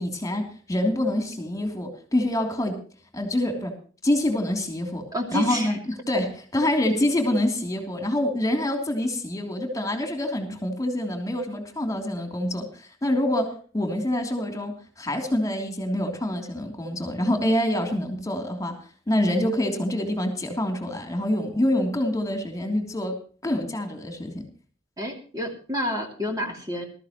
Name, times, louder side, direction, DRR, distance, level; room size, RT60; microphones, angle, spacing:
voice 1, 0.0-2.8 3.1-3.7 4.0-18.8 19.1-23.2 23.4-24.4, left 1 dB, 15° left, 4 dB, 3.1 m, -26 dB
voice 2, 5.1-5.8 10.5-10.6 25.0-26.8, equal, 20° right, 1 dB, 2.9 m, -29 dB
20.5 x 13.5 x 3.1 m, 0.40 s
head